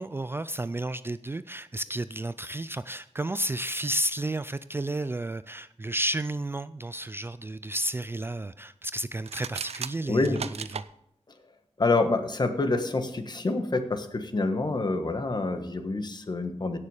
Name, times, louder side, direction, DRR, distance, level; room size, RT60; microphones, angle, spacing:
voice 1, 0.0-10.8, right 1 dB, 20° right, 14 dB, 0.3 m, -32 dB
sound 1, 9.2-10.9, right 6 dB, 70° right, 0.5 m, -36 dB
voice 2, 10.1-10.4 11.8-16.8, left 3 dB, 40° left, 7 dB, 1.4 m, -27 dB
17.0 x 6.7 x 4.9 m, 0.74 s
wide cardioid pair, 125°, 11 cm